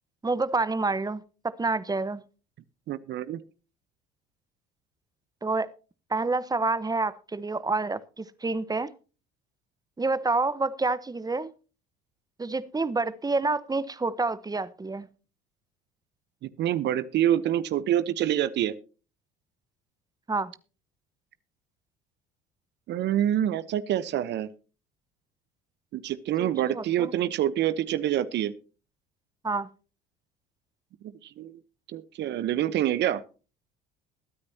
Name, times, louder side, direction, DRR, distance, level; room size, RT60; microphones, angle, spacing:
voice 1, 0.2-2.2 5.4-5.7 6.1-8.9 10.0-11.5 12.4-15.1 20.3-20.5 26.4-27.1 29.4-29.7, right 3 dB, 20° right, 1.1 m, -28 dB
voice 2, 2.9-3.4 16.4-18.7 22.9-24.5 25.9-28.5 31.2-31.5 31.9-33.2, right 11 dB, 60° right, 1.0 m, -26 dB
21.5 x 9.7 x 2.8 m
hypercardioid pair, 70°, 21 cm